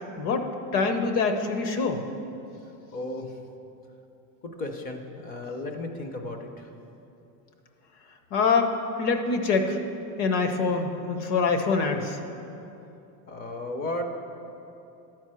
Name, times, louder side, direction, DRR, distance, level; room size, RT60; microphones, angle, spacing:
voice 1, 0.2-2.0 8.3-9.8 10.2-12.2, left 4 dB, 50° left, 6 dB, 0.9 m, -25 dB
voice 2, 2.9-3.3 4.6-6.7 13.3-14.0, left 2 dB, 20° left, 5 dB, 0.5 m, -34 dB
11.0 x 4.5 x 7.5 m, 2.8 s
supercardioid pair, 160°, 48 cm